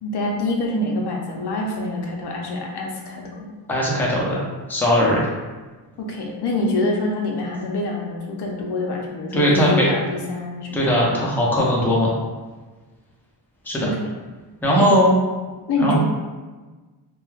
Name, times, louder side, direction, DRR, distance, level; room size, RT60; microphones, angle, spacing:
voice 1, 0.0-3.6 6.0-11.3 13.8-14.1 14.8-14.9 15.7-16.0, left 2 dB, 65° left, 0 dB, 0.5 m, -26 dB
voice 2, 3.7-4.4 4.7-5.2 9.3-9.9 10.7-12.1 13.7-13.9 14.6-15.1 15.8-16.0, equal, 5° left, -5 dB, 0.5 m, -19 dB
2.2 x 2.2 x 3.1 m, 1.3 s
wide cardioid pair, 115°, 45 cm